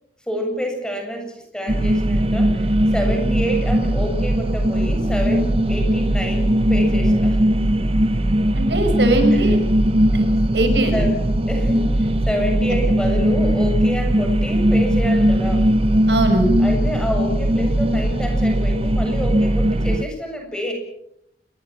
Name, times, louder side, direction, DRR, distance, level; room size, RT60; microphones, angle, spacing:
voice 1, 0.3-7.4 9.3-9.8 10.3-10.4 10.9-11.2 11.5-11.9 12.3-15.7 16.6-20.7, equal, 5° left, 3 dB, 7.4 m, -28 dB
sound 1, 1.7-20.0, right 1 dB, 35° right, 1.0 m, -19 dB
voice 2, 8.5-9.6 10.1-10.3 10.5-10.9 16.1-16.5, right 1 dB, 80° right, 6 dB, 6.3 m, -20 dB
28.5 x 23.0 x 6.1 m, 0.75 s
head